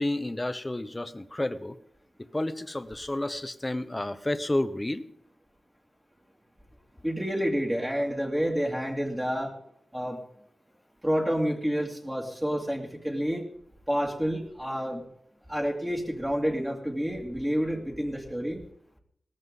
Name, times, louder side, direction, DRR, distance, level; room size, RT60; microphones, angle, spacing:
voice 1, 0.0-1.8 2.2-5.0, left 1 dB, 20° left, 10 dB, 1.0 m, -30 dB
voice 2, 7.0-9.5 9.9-10.2 11.0-13.4 13.9-15.0 15.5-18.6, equal, 10° right, -1 dB, 2.3 m, -29 dB
18.5 x 14.0 x 3.8 m, 0.67 s
wide cardioid pair, 85°, 0 cm